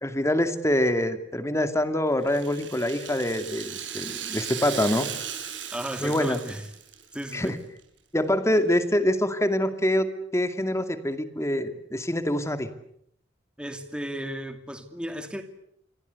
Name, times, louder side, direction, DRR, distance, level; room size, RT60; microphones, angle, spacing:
voice 1, 0.0-5.1 6.0-6.4 7.3-7.6 8.1-12.7, left 1 dB, 15° left, 2.4 m, -25 dB
Rattle (instrument), 2.2-7.5 7.8-7.9 8.7-8.8, right 9 dB, 80° right, 7.3 m, -37 dB
voice 2, 5.7-6.7 7.1-7.6 13.6-15.4, equal, 5° right, 2.6 m, -34 dB
29.0 x 22.5 x 8.2 m
head